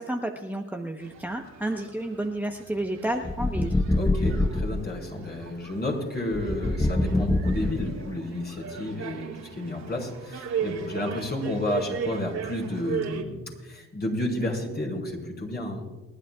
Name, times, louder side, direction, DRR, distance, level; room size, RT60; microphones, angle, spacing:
voice 1, 0.0-3.7, right 1 dB, 5° right, 2 dB, 1.1 m, -31 dB
sound 1, 1.0-13.2, right 7 dB, 65° right, 2.5 m, -38 dB
sound 2, 3.2-4.8 6.3-8.2, left 2 dB, 10° left, 0.7 m, -25 dB
voice 2, 3.9-15.9, left 1 dB, 35° left, 0 dB, 5.4 m, -31 dB
29.0 x 11.5 x 2.4 m, 1.3 s
cardioid pair, 90°, 30 cm